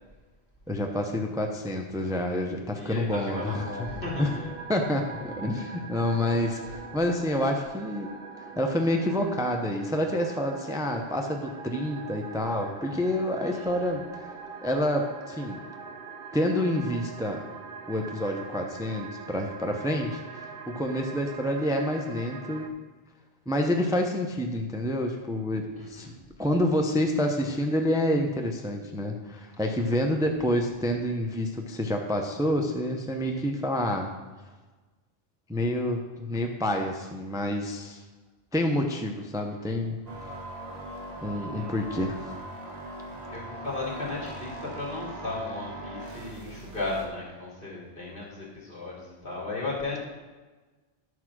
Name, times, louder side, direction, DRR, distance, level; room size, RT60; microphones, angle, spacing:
voice 1, 0.7-3.6 4.2-4.3 4.7-8.1 8.4-14.3 14.6-15.6 16.3-17.4 17.9-22.7 23.5-34.1 35.5-38.0 38.5-40.3 41.2-42.3, left 1 dB, 5° right, 3 dB, 0.6 m, -28 dB
voice 2, 2.7-4.5 13.5-13.9 25.7-26.1 41.3-41.8 43.0-50.0, left 2 dB, 60° left, -5 dB, 2.8 m, -36 dB
sound 1, 3.3-22.7, right 4 dB, 65° right, 0.9 m, -42 dB
sound 2, 40.1-47.1, right 1 dB, 40° right, 1.5 m, -40 dB
10.5 x 4.8 x 6.1 m, 1.3 s
omnidirectional pair, 1.0 m